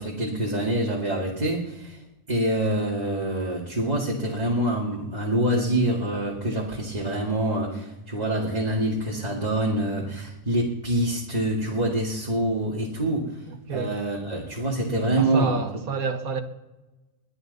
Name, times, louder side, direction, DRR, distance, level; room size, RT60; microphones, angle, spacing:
voice 1, 0.0-2.0 2.3-13.3 13.7-15.6, right 1 dB, 30° right, 2.1 m, -26 dB
voice 2, 13.5-13.9 15.2-16.4, right 5 dB, 80° right, 1.8 m, -29 dB
22.0 x 13.0 x 4.0 m
omnidirectional pair, 1.5 m